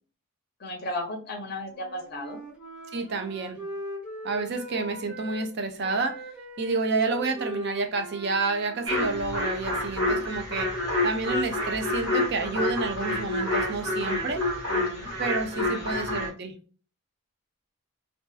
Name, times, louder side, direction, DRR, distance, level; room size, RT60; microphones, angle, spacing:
voice 1, 0.6-2.4 14.7-15.1 15.6-16.0, left 1 dB, 45° left, 2 dB, 0.5 m, -35 dB
Wind instrument woodwind instrument, 1.7-5.5 5.8-10.3, right 1 dB, 5° right, 0.7 m, -40 dB
voice 2, 2.9-3.6 4.2-6.2 6.6-10.7 11.0-14.4 15.2-16.5, right 3 dB, 50° right, 7 dB, 0.4 m, -29 dB
sound 1, 8.8-16.3, left 1 dB, 75° right, 1.2 m, -28 dB
2.6 x 2.3 x 2.2 m, 0.40 s
head